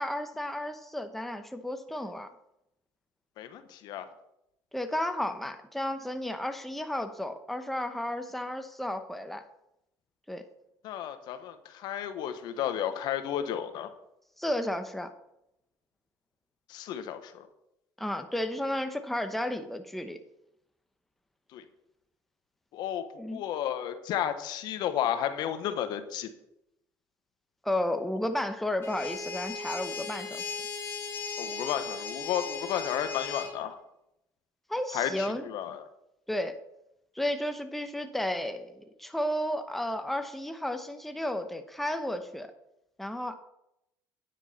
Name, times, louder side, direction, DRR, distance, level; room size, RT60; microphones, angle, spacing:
voice 1, 0.0-2.3 4.7-9.4 10.3-10.5 14.4-15.1 18.0-20.2 23.2-23.4 27.6-30.6 34.7-35.4 36.3-36.6 37.1-42.5 43.0-43.4, left 1 dB, ahead, 7 dB, 0.9 m, -33 dB
voice 2, 3.4-4.1 10.8-13.9 16.7-17.5 21.5-21.6 22.7-23.0 23.3-26.3 31.4-33.8 34.9-35.8, left 10 dB, 65° left, 10 dB, 1.1 m, -32 dB
sound 1, 28.8-33.5, left 4 dB, 30° left, 4.0 m, -37 dB
9.8 x 8.1 x 4.3 m, 0.82 s
supercardioid pair, 95°, 8 cm